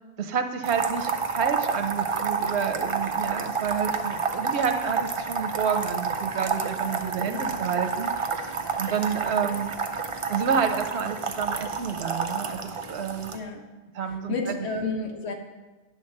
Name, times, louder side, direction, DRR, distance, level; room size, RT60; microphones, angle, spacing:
voice 1, 0.2-8.1 8.8-9.7 10.3-13.3 13.9-14.5, right 7 dB, 85° right, 8 dB, 1.0 m, -29 dB
sound 1, 0.6-13.4, right 4 dB, 40° right, 0.5 m, -29 dB
voice 2, 7.3-7.6 13.3-13.6 14.1-15.3, left 3 dB, 80° left, 3 dB, 1.3 m, -31 dB
10.5 x 3.7 x 6.5 m, 1.2 s
omnidirectional pair, 1.1 m